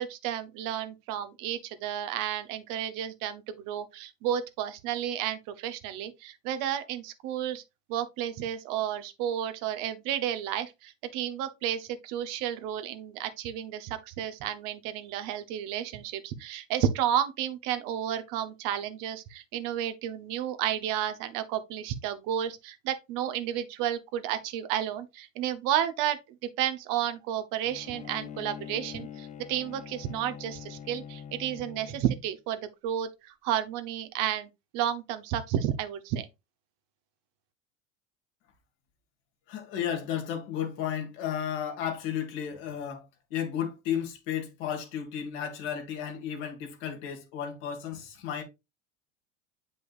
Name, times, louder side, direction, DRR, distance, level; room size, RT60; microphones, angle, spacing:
voice 1, 0.0-7.6 7.9-36.3, right 10 dB, 55° right, 1.0 m, -32 dB
Bowed string instrument, 27.6-32.3, left 8 dB, 20° left, 0.6 m, -44 dB
voice 2, 39.5-48.4, left 9 dB, 65° left, 2.1 m, -33 dB
7.7 x 5.3 x 2.5 m
hypercardioid pair, 80°, 38 cm